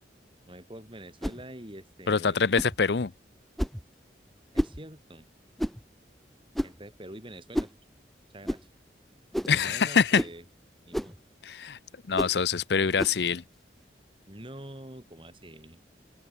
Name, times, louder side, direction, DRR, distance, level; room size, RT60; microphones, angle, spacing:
voice 1, 0.5-2.6 4.5-5.3 6.6-7.7 8.3-8.6 9.5-10.4 10.8-11.2 14.3-15.8, right 1 dB, 30° right, 7.5 m, -45 dB
sound 1, 1.2-1.4 2.6-2.8 3.6-3.8 4.6-4.8 5.6-5.8 6.6-6.8 7.5-7.8 8.5-8.6 9.3-9.6 10.1-10.4 10.9-11.2 12.2-12.4 13.0-13.2, equal, ahead, 2.9 m, -30 dB
voice 2, 2.1-3.1 9.5-10.2 11.4-11.8 12.1-13.4, left 5 dB, 70° left, 0.6 m, -24 dB
open air
head